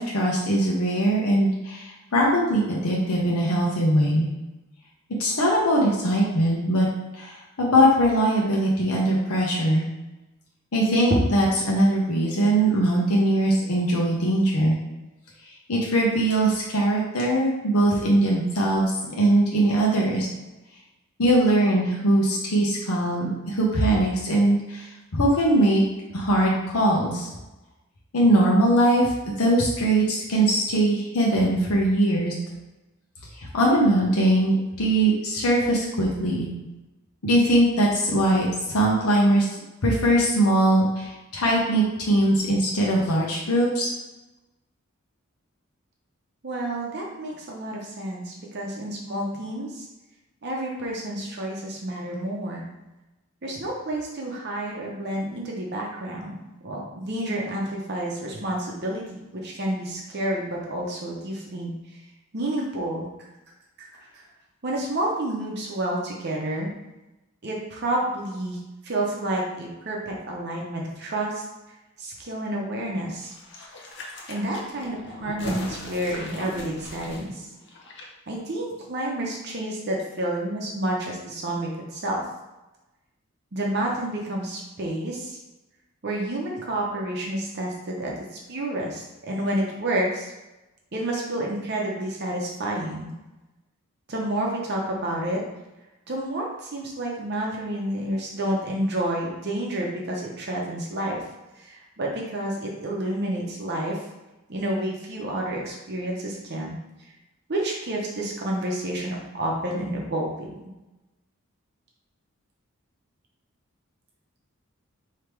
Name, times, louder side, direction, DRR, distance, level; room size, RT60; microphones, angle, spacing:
voice 1, 0.0-4.3 5.2-6.9 7.1-9.9 10.7-14.8 15.7-20.3 21.2-25.8 26.1-27.3 28.1-32.3 33.3-36.5 37.2-39.5 39.8-43.9, right 1 dB, 85° left, -3 dB, 0.8 m, -21 dB
voice 2, 46.4-49.9 50.4-52.6 53.4-56.4 56.6-61.7 62.3-63.1 63.8-63.9 64.1-64.2 64.6-66.7 67.4-68.6 68.8-71.4 72.0-73.3 74.3-77.5 78.3-82.2 83.5-85.4 86.0-88.1 88.5-90.3 90.9-93.1 94.1-95.4 96.1-101.2 101.6-104.0 104.5-106.7 107.5-110.5, right 1 dB, 50° right, -2 dB, 0.7 m, -29 dB
sound 1, 73.2-78.0 78.3-78.4, left 1 dB, 55° left, 0.7 m, -39 dB
3.4 x 2.9 x 4.5 m, 1.0 s
head